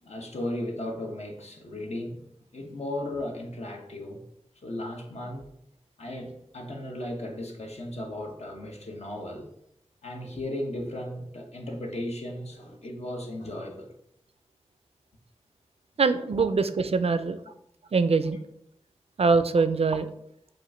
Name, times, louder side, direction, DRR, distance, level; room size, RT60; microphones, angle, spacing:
voice 1, 0.0-2.2 2.5-4.2 4.6-5.5 6.0-9.5 10.0-13.9, left 1 dB, 65° left, 0.9 m, -36 dB
voice 2, 16.0-17.4 17.9-18.4 19.2-20.1, right 4 dB, 60° right, 0.4 m, -23 dB
4.9 x 2.5 x 4.3 m
wide cardioid pair, 50°, 12 cm